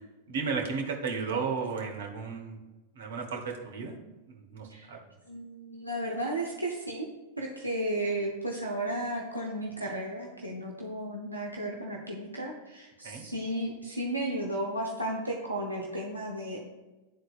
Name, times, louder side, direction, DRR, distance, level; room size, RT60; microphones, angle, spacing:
voice 1, 0.3-2.6 2.9-4.0 4.3-5.0 13.0-13.2, right 5 dB, 60° right, 2 dB, 1.1 m, -34 dB
voice 2, 5.3-7.1 7.4-16.6, right 1 dB, 85° right, -2 dB, 0.7 m, -34 dB
11.5 x 3.9 x 2.4 m, 1.1 s
figure-of-eight pair, 90°, 0 cm